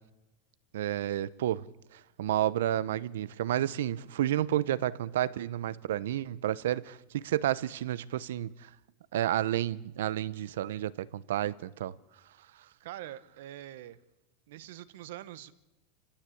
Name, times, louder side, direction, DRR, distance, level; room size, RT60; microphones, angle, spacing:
voice 1, 0.7-1.7 1.9-8.7 9.1-11.9, right 12 dB, 85° right, 0.7 m, -31 dB
voice 2, 12.8-14.0 14.5-15.5, right 13 dB, 65° right, 1.1 m, -44 dB
27.0 x 16.0 x 8.6 m
supercardioid pair, 175°, 0 cm